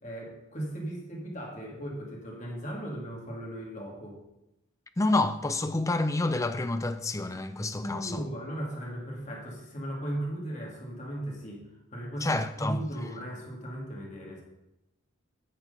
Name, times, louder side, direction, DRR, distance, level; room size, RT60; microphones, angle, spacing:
voice 1, 0.0-4.2 7.8-11.6 11.9-14.4, right 1 dB, 35° left, 2.3 m, -37 dB
voice 2, 5.0-8.3 12.2-12.8, left 2 dB, 15° left, 0.4 m, -28 dB
9.1 x 6.7 x 5.5 m
head